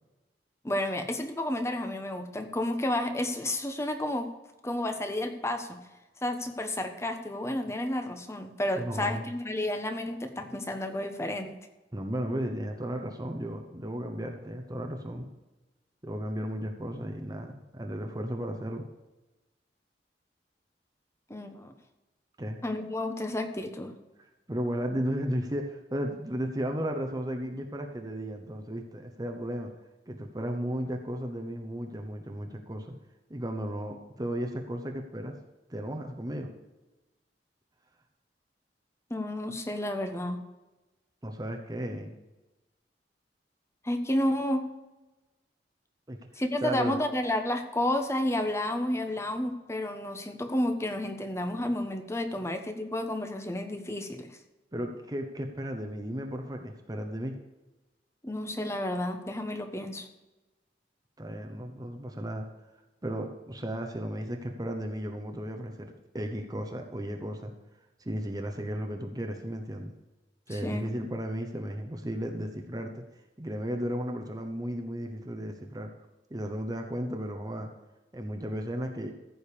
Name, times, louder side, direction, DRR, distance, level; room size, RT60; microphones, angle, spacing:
voice 1, 0.6-4.3 4.6-5.8 6.2-11.5 21.3-21.7 22.6-23.9 39.1-40.4 43.8-44.7 46.3-54.3 58.2-60.1 70.5-70.9, left 1 dB, 15° left, 6 dB, 1.1 m, -31 dB
voice 2, 8.7-9.2 11.9-15.3 16.0-18.8 22.4-22.6 24.5-29.7 30.1-32.9 33.3-35.3 35.7-36.5 41.2-42.2 46.1-46.2 46.6-46.9 54.7-57.4 61.2-62.4 63.0-67.5 68.0-69.9 70.5-73.0 73.4-75.9 76.3-77.7 78.1-79.1, equal, 20° right, 4 dB, 1.0 m, -34 dB
14.5 x 5.3 x 6.8 m, 1.1 s
head